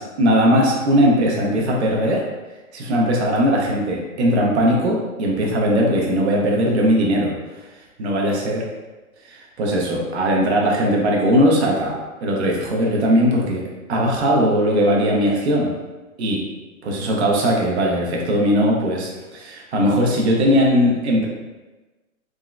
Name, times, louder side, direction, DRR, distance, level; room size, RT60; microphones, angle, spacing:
voice 1, 0.0-2.2 2.7-7.3 8.0-8.6 9.3-11.9 12.2-13.6 13.9-15.7 16.2-16.4 16.8-21.3, equal, 50° right, -2 dB, 0.7 m, -19 dB
3.6 x 2.1 x 2.3 m, 1.2 s
hypercardioid pair, 170°, 42 cm